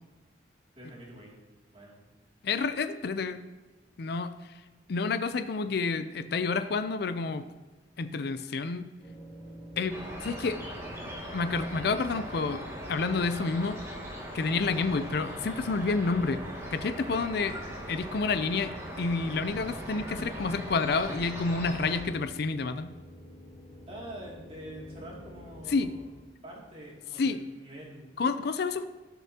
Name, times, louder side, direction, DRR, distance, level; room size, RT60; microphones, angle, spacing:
voice 1, 0.8-1.4 1.7-2.0 14.5-14.7 23.9-26.0 26.4-28.2, right 1 dB, 30° right, -4 dB, 2.6 m, -45 dB
voice 2, 2.4-3.4 4.0-4.3 4.9-7.5 8.0-8.9 9.8-10.6 11.3-12.6 12.9-13.8 14.3-16.4 16.7-17.6 17.9-22.9 25.7-25.9 27.2-27.4 28.2-28.9, left 4 dB, 60° left, 11 dB, 0.4 m, -29 dB
sound 1, 9.0-26.2, equal, 20° left, 2.2 m, -51 dB
sound 2, 9.9-22.0, equal, 15° right, 2.1 m, -40 dB
18.5 x 6.8 x 2.9 m, 1.2 s
head